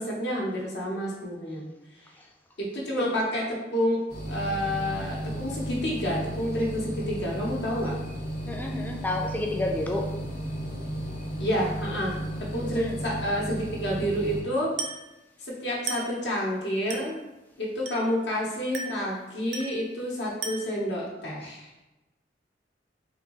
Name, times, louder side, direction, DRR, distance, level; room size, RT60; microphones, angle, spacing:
voice 1, 0.0-1.7 2.6-7.9 11.4-12.2 12.5-14.7 15.4-17.1 17.6-21.7, equal, 70° left, -4 dB, 0.8 m, -29 dB
sound 1, 4.1-14.4, right 1 dB, 40° left, 0.8 m, -34 dB
voice 2, 8.5-10.1 12.7-13.0, left 2 dB, 10° left, 1 dB, 0.4 m, -30 dB
Glass, 14.8-15.1 15.9-16.2 16.9-17.2 17.8-18.2 18.7-19.1 19.5-19.9 20.4-20.8, right 4 dB, 90° right, 0.5 m, -36 dB
3.5 x 2.7 x 2.9 m, 1.0 s
head